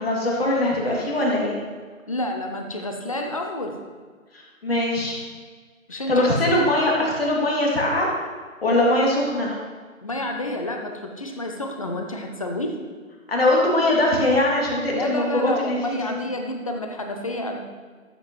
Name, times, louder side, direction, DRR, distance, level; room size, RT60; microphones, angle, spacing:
voice 1, 0.0-1.6 4.3-5.2 6.1-8.1 8.6-9.5 13.3-16.2, left 1 dB, 45° left, -3 dB, 2.8 m, -21 dB
voice 2, 2.1-3.8 5.9-6.6 10.0-12.8 14.9-17.6, left 1 dB, 25° left, 3 dB, 0.7 m, -29 dB
13.5 x 7.7 x 3.2 m, 1.5 s
figure-of-eight pair, 155°, 41 cm